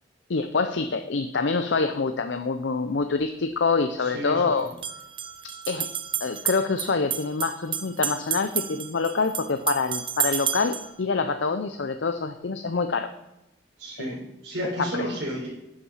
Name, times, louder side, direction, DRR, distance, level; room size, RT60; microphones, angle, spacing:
voice 1, 0.3-4.7 5.7-5.9 6.2-13.1 14.0-14.1, left 4 dB, 75° left, 8 dB, 0.6 m, -26 dB
sound 1, 3.0-3.1 4.7-10.9, right 9 dB, 25° right, 0.4 m, -31 dB
voice 2, 4.0-4.4 13.8-15.5, equal, 85° right, -4 dB, 4.0 m, -32 dB
10.0 x 7.2 x 5.7 m, 0.92 s
head